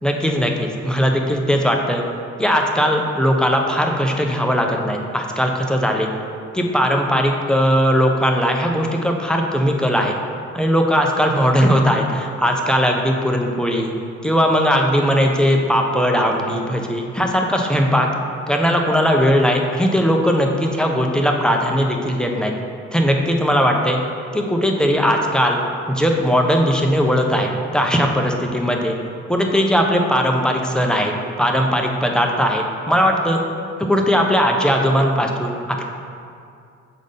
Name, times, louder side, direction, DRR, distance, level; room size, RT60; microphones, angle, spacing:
voice 1, 0.0-2.0 2.4-6.1 6.5-10.1 10.5-13.9 14.2-18.1 18.5-22.5 22.9-24.0 24.3-25.6 25.9-28.9 29.3-33.4 33.8-35.8, equal, ahead, 1 dB, 0.8 m, -18 dB
6.7 x 3.8 x 5.5 m, 2.4 s
hypercardioid pair, 50°, 36 cm